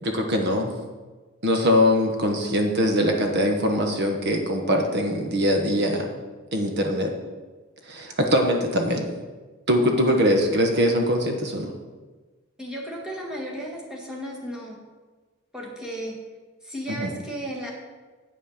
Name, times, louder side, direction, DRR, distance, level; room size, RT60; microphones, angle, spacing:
voice 1, 0.0-0.7 1.4-6.1 6.5-7.1 7.9-9.0 9.7-11.7 16.9-17.1, equal, 55° right, 3 dB, 1.2 m, -22 dB
voice 2, 12.6-14.8 15.5-16.2 16.6-17.7, right 1 dB, 5° right, -3 dB, 1.8 m, -34 dB
8.6 x 5.7 x 6.6 m, 1.3 s
head